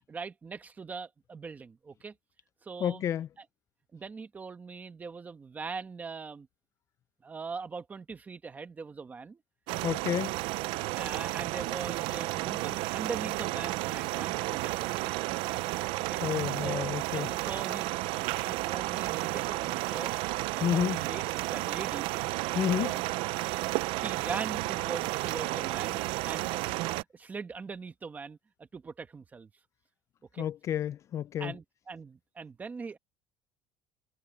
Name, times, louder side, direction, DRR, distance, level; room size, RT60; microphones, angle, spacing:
voice 1, 0.1-2.1 2.6-3.0 3.9-6.5 7.2-9.4 10.9-15.1 16.1-16.2 16.6-20.1 20.5-22.1 22.8-22.9 23.4-28.4 28.7-29.5 30.3-30.5 31.4-33.0, right 4 dB, 20° right, 1.2 m, -41 dB
voice 2, 2.8-3.3 9.8-10.3 16.2-17.3 20.6-21.0 22.5-23.0 30.4-31.6, left 10 dB, 35° left, 0.3 m, -30 dB
sound 1, 9.7-27.0, right 20 dB, 80° right, 0.5 m, -32 dB
cardioid pair, 165°, 9 cm